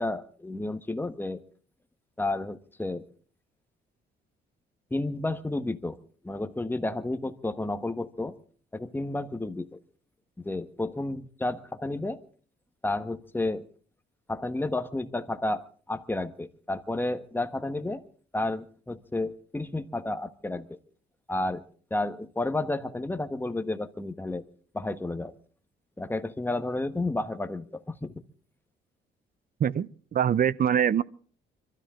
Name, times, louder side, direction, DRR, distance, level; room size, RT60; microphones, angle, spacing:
voice 1, 0.0-1.4 2.2-3.0 4.9-6.0 6.2-8.3 8.7-9.8 10.4-12.2 12.8-13.7 14.3-18.0 18.3-20.8 21.3-24.4 24.7-25.3 26.0-28.2, left 2 dB, 10° left, 1.3 m, -31 dB
voice 2, 29.6-31.0, right 8 dB, 45° right, 0.7 m, -24 dB
25.0 x 13.0 x 3.7 m
cardioid pair, 90°, 20 cm